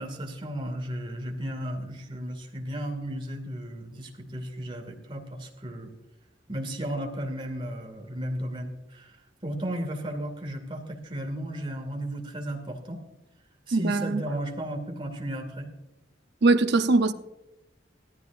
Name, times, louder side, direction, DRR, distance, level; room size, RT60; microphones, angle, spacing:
voice 1, 0.0-5.9 6.5-9.2 9.4-13.0 13.7-15.7, right 1 dB, 25° right, 2.4 m, -34 dB
voice 2, 13.7-14.2 16.4-17.1, right 3 dB, 60° right, 0.8 m, -21 dB
18.0 x 14.0 x 2.6 m
head